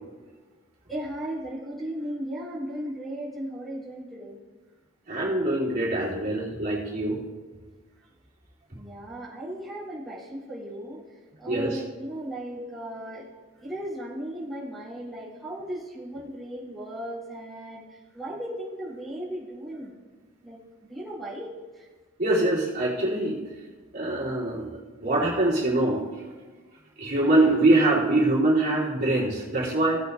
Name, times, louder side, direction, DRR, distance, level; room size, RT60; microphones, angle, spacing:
voice 1, 0.9-4.4 8.7-11.0 11.4-13.3 13.6-19.9 20.4-20.6 20.9-21.5 21.7-21.8, right 1 dB, ahead, -8 dB, 3.9 m, -36 dB
voice 2, 5.1-7.2 11.5-11.8 22.2-23.4 23.9-26.0 27.0-30.0, right 2 dB, 50° right, -8 dB, 3.5 m, -24 dB
18.0 x 8.3 x 2.7 m, 1.3 s
head